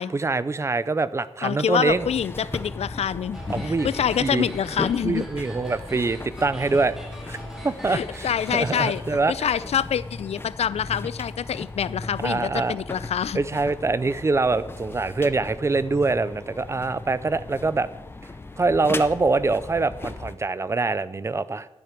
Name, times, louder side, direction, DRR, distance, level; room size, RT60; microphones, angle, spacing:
voice 1, 0.1-2.1 3.5-3.9 4.2-4.5 5.0-7.0 7.3-7.4 7.6-9.3 12.2-12.8 13.3-17.9 18.6-21.7, right 3 dB, 25° right, 15 dB, 0.5 m, -24 dB
voice 2, 1.4-5.2 7.8-9.0 9.3-13.4, left 8 dB, 85° left, 18 dB, 0.5 m, -26 dB
sound 1, 1.9-20.4, left 3 dB, 20° left, 0.6 m, -37 dB
sound 2, 3.3-9.0, equal, 5° right, 2.6 m, -42 dB
12.0 x 10.5 x 6.0 m, 0.98 s
wide cardioid pair, 165°, 11 cm